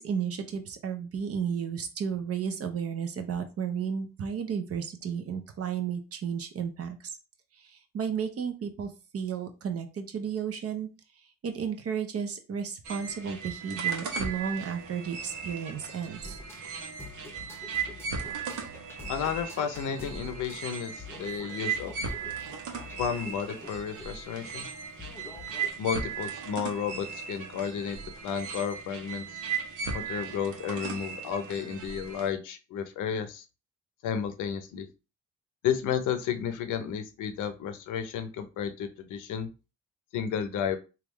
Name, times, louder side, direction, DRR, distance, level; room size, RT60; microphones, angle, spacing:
voice 1, 0.0-7.1 7.6-10.9 11.4-16.4, right 7 dB, 50° right, 6 dB, 0.7 m, -33 dB
sound 1, 12.8-32.3, right 6 dB, 80° right, 0.9 m, -37 dB
sound 2, 16.2-25.7, left 3 dB, 10° left, 0.7 m, -47 dB
voice 2, 19.1-21.9 23.0-24.7 25.8-28.0 28.2-29.4 29.9-33.4 34.0-34.9 35.6-39.5 40.1-40.8, left 8 dB, 85° left, 8 dB, 0.7 m, -32 dB
3.5 x 2.4 x 3.1 m, 0.31 s
cardioid pair, 90°, 30 cm